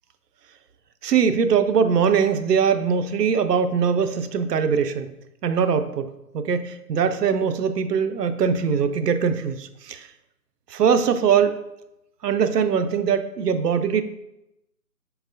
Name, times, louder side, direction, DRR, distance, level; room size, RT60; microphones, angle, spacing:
voice 1, 1.0-5.1 5.4-6.1 6.3-10.1 10.7-11.6 12.2-14.0, right 6 dB, 85° right, 10 dB, 0.6 m, -21 dB
4.2 x 3.8 x 2.7 m, 0.88 s
hypercardioid pair, 170°, 47 cm